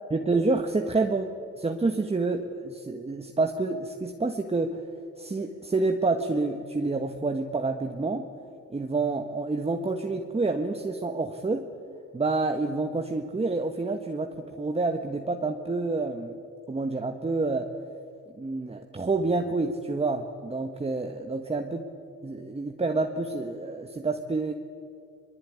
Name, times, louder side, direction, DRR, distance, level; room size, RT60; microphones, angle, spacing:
voice 1, 0.1-4.8 5.2-8.3 8.7-11.7 12.1-16.3 16.7-17.7 18.4-21.9 22.2-24.5, right 3 dB, 20° right, 4 dB, 1.5 m, -28 dB
23.0 x 22.0 x 9.8 m, 2.4 s
cardioid pair, 90°, 30 cm